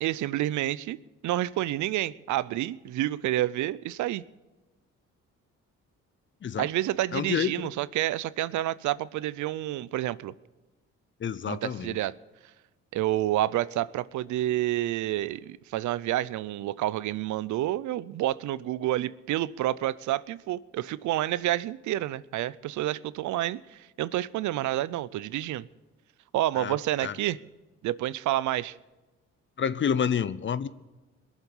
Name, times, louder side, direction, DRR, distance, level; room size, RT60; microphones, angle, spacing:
voice 1, 0.0-1.0 1.2-4.2 6.6-10.3 11.5-12.1 12.9-25.7 26.3-27.4 27.8-28.8, right 14 dB, 75° right, 0.5 m, -29 dB
voice 2, 7.1-7.5 11.2-12.0 26.6-26.8 27.0-27.1 29.6-30.7, left 7 dB, 40° left, 0.7 m, -28 dB
21.5 x 7.3 x 7.1 m
cardioid pair, 90°, 30 cm